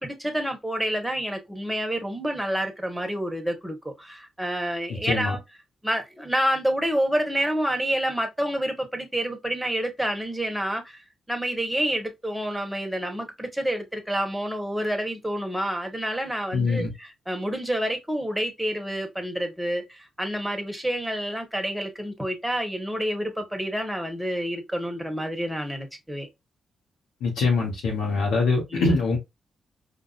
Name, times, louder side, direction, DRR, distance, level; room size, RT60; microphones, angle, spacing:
voice 1, 0.0-5.4 5.8-11.0 11.3-26.3 28.7-28.9, equal, 5° right, 1.3 m, -28 dB
voice 2, 4.9-5.4 16.5-16.9 27.2-29.2, left 3 dB, 80° left, 1.2 m, -23 dB
4.5 x 2.7 x 2.5 m
supercardioid pair, 55°, 0 cm